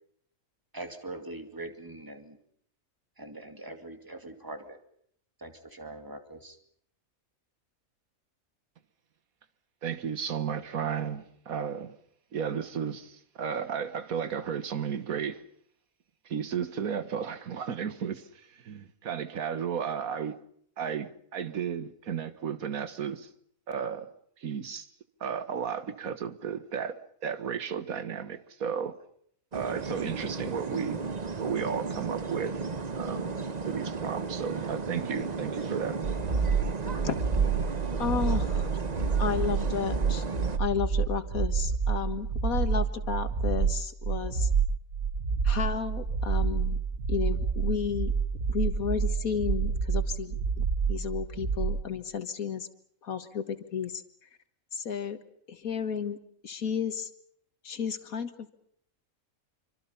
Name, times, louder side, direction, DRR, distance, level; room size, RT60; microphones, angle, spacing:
voice 1, 0.7-2.4 3.2-4.8 5.4-6.6, right 2 dB, 15° right, 2.4 m, -42 dB
voice 2, 9.8-11.9 12.3-15.4 16.2-20.4 20.8-23.3 23.7-24.1 24.4-24.9 25.2-29.0 29.5-31.0 31.4-32.6 33.0-33.4 33.6-36.0, right 7 dB, 90° right, 1.7 m, -33 dB
sound 1, 29.5-40.6, right 4 dB, 35° right, 1.0 m, -35 dB
sound 2, 36.0-51.9, right 5 dB, 60° right, 1.8 m, -28 dB
voice 3, 38.0-38.7 39.2-40.3 40.6-44.5 45.4-46.8 47.1-48.1 48.5-52.7 53.0-54.0 54.7-55.2 55.5-56.2 56.4-57.1 57.6-58.5, left 7 dB, 90° left, 2.0 m, -32 dB
27.0 x 25.0 x 5.7 m
omnidirectional pair, 1.4 m